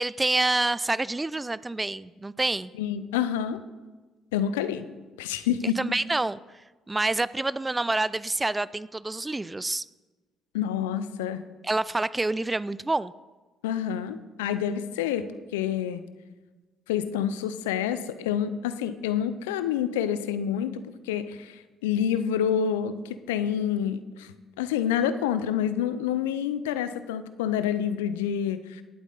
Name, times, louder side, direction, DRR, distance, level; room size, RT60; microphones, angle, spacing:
voice 1, 0.0-2.7 5.6-6.4 6.9-9.9 11.6-13.1, right 2 dB, 20° right, 19 dB, 0.4 m, -27 dB
voice 2, 2.8-3.6 4.3-4.8 5.2-5.8 10.5-11.4 13.6-15.3 15.5-16.0 16.9-24.3 24.6-28.8, left 9 dB, 85° left, 12 dB, 0.6 m, -28 dB
18.0 x 8.2 x 4.1 m, 1.3 s
hypercardioid pair, 50°, 0 cm